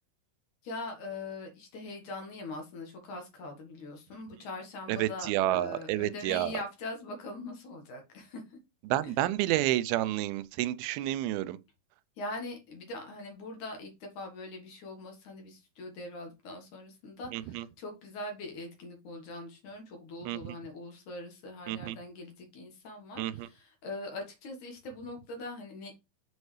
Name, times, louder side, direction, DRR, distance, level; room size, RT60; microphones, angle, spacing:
voice 1, 0.6-8.4 9.0-9.1 12.2-25.9, left 2 dB, 60° left, 2.7 m, -42 dB
voice 2, 4.9-6.5 8.9-11.6 17.3-17.7 20.2-20.6 21.7-22.0 23.2-23.5, right 14 dB, 90° right, 2.4 m, -30 dB
8.0 x 5.2 x 3.2 m
omnidirectional pair, 4.3 m